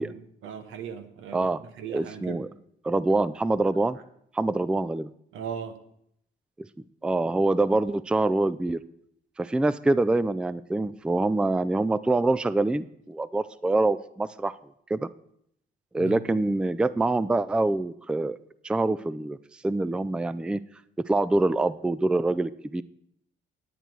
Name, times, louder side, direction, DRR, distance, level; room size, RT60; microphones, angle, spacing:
voice 1, 0.0-2.5 5.3-5.8 16.0-16.2, right 7 dB, 85° right, 10 dB, 1.1 m, -38 dB
voice 2, 1.9-2.5 2.8-4.0 4.3-5.1 6.6-6.7 7.0-8.8 9.4-14.5 14.9-15.1 15.9-18.4 18.6-19.4 19.6-20.6 21.1-22.8, right 2 dB, 5° right, 17 dB, 0.3 m, -25 dB
10.0 x 9.1 x 4.6 m, 0.71 s
cardioid pair, 90°, 20 cm